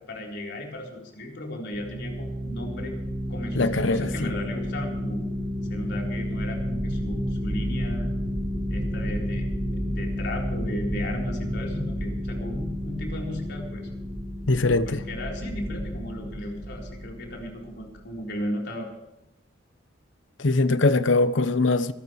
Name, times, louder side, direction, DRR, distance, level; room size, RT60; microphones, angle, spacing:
voice 1, 0.1-2.9 3.3-5.2 5.7-8.1 8.7-13.9 14.8-18.9, left 1 dB, 60° left, 4.1 m, -35 dB
sound 1, 1.7-18.0, equal, 45° right, 6.0 m, -31 dB
voice 2, 3.5-4.3 14.5-15.0 20.4-21.9, left 3 dB, 80° left, 0.9 m, -22 dB
25.5 x 12.5 x 3.2 m
head